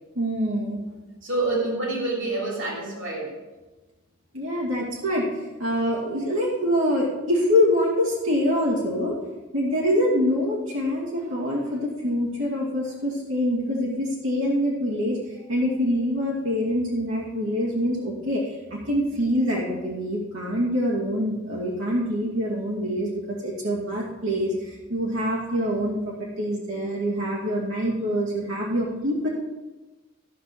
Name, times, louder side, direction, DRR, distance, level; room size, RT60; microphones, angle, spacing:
voice 1, 0.1-0.8 4.3-9.1 9.5-15.2 15.5-18.4 18.7-29.3, equal, 75° right, -6 dB, 2.6 m, -25 dB
voice 2, 1.2-3.3, right 2 dB, 60° right, -2 dB, 3.0 m, -27 dB
14.0 x 6.9 x 4.6 m, 1.1 s
head